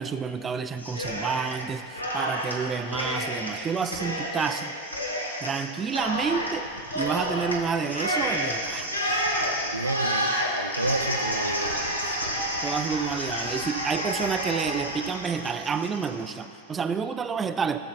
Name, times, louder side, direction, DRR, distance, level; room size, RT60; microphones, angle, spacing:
voice 1, 0.0-4.7 5.4-6.7 6.9-8.9 12.6-17.8, right 6 dB, 20° right, 9 dB, 0.4 m, -29 dB
Cheering, 0.8-1.6 1.9-16.3, equal, 80° left, 1.2 m, -30 dB
voice 2, 9.6-12.0, right 2 dB, 85° right, 7 dB, 0.4 m, -30 dB
16.5 x 7.7 x 2.3 m, 2.7 s
figure-of-eight pair, 90°, 0 cm